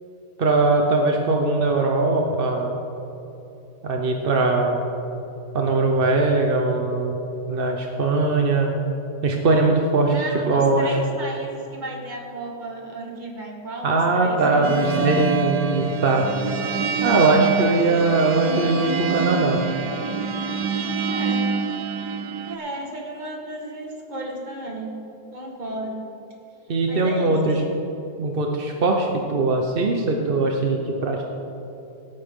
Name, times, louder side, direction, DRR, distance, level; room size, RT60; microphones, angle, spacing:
voice 1, 0.4-2.7 3.8-4.8 5.5-7.2 7.5-8.7 9.2-10.9 13.8-16.3 17.0-19.6 26.7-27.6 28.2-31.2, right 3 dB, 50° right, 2 dB, 0.6 m, -21 dB
voice 2, 10.0-15.0 21.0-21.5 21.8-22.0 22.5-24.9 25.3-26.1 26.9-27.4, right 1 dB, 25° right, 0 dB, 1.5 m, -34 dB
sound 1, 14.6-22.6, right 5 dB, 70° right, 1.3 m, -26 dB
17.0 x 8.8 x 3.6 m, 3.0 s
omnidirectional pair, 1.9 m